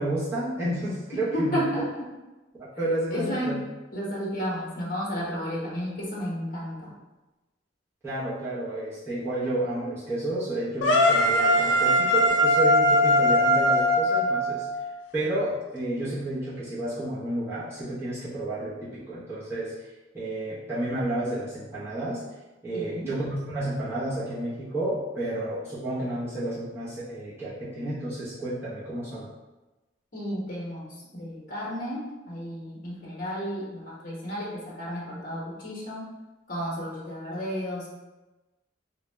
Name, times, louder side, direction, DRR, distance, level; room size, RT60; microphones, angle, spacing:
voice 1, 0.0-1.6 2.8-3.6 8.0-14.7 15.1-19.7 20.1-22.2 22.6-29.3, right 1 dB, 15° right, -12 dB, 0.9 m, -31 dB
voice 2, 1.1-2.1 3.1-3.6 3.9-6.9 22.7-23.1 30.1-36.1 36.5-37.9, equal, 45° left, -5 dB, 0.9 m, -32 dB
sound 1, 10.8-14.9, equal, 75° left, 0.4 m, -21 dB
3.5 x 2.3 x 3.1 m, 1.1 s
head